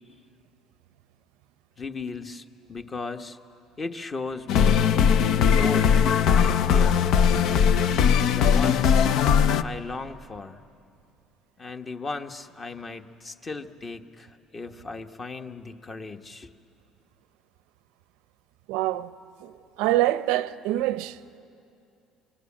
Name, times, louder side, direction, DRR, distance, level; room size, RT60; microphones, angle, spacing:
voice 1, 1.8-4.9 5.4-5.9 6.3-7.1 8.2-9.0 9.6-10.6 11.6-16.5, left 3 dB, 30° left, 1.1 m, -36 dB
sound 1, 4.5-9.6, left 7 dB, 70° left, 0.6 m, -19 dB
voice 2, 18.7-19.1 19.4-19.5 19.8-21.2, right 15 dB, 85° right, 0.7 m, -25 dB
24.5 x 23.0 x 8.7 m
supercardioid pair, 95°, 0 cm